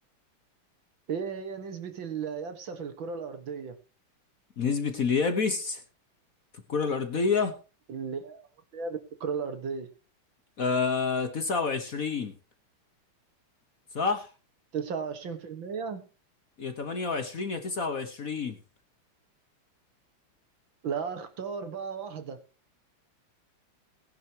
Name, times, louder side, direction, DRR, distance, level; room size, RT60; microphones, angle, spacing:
voice 1, 1.1-3.8 7.9-8.5 8.7-9.9 14.7-16.0 20.8-22.4, right 6 dB, 65° right, 9 dB, 2.3 m, -35 dB
voice 2, 4.6-5.8 6.7-7.6 10.6-12.3 13.9-14.3 16.6-18.6, left 5 dB, 45° left, 8 dB, 1.4 m, -28 dB
19.0 x 10.5 x 2.9 m, 0.33 s
omnidirectional pair, 2.4 m